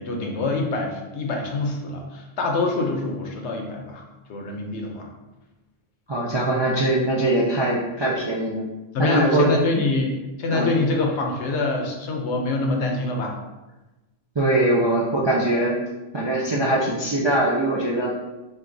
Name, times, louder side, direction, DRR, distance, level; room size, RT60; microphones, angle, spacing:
voice 1, 0.0-4.0 4.3-5.1 8.9-13.4, left 3 dB, 75° left, 2 dB, 1.0 m, -25 dB
voice 2, 6.1-8.7 9.0-9.5 9.8-9.9 10.5-10.7 14.4-15.8 16.1-18.1, right 1 dB, 40° right, -5 dB, 0.3 m, -22 dB
6.2 x 2.4 x 2.6 m, 1.1 s
omnidirectional pair, 1.2 m